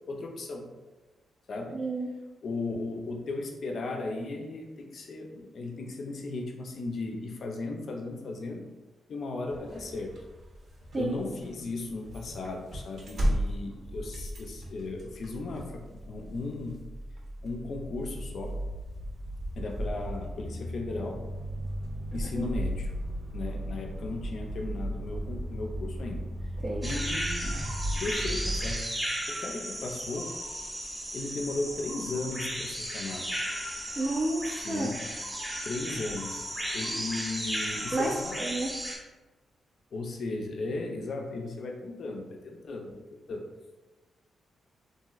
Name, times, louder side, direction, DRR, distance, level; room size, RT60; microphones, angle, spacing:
voice 1, 0.1-0.7 1.5-1.8 2.4-8.7 9.1-10.1 11.0-16.8 17.4-18.6 19.6-21.2 22.1-22.9 23.3-26.3 26.8-27.6 27.9-28.8 29.3-30.3 31.1-33.4 34.6-35.2 35.6-36.4 36.7-38.5 39.9-43.0 43.3-43.4, left 3 dB, 65° left, 2 dB, 0.4 m, -36 dB
voice 2, 1.7-2.1 10.9-11.1 22.4-22.5 26.6-26.8 34.0-34.9 37.9-38.1 38.4-38.7, right 2 dB, 40° right, -3 dB, 0.4 m, -30 dB
sound 1, 9.5-28.7, equal, 60° right, 0.7 m, -36 dB
sound 2, 26.8-39.0, equal, 15° right, 0.8 m, -35 dB
2.9 x 2.5 x 2.4 m, 1.2 s
cardioid pair, 85°, 0 cm